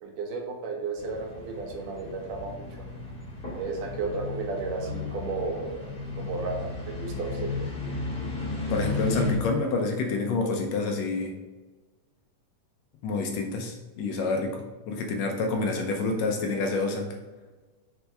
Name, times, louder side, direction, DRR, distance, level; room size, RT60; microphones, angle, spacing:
voice 1, 0.0-2.7 3.6-5.7 6.2-7.5, right 4 dB, 90° right, 1 dB, 2.9 m, -33 dB
sound 1, 1.0-9.3, left 3 dB, 25° left, 1.5 m, -34 dB
voice 2, 8.7-11.3 13.0-17.1, left 3 dB, 70° left, 3 dB, 1.8 m, -28 dB
6.5 x 6.3 x 3.4 m, 1.3 s
omnidirectional pair, 3.6 m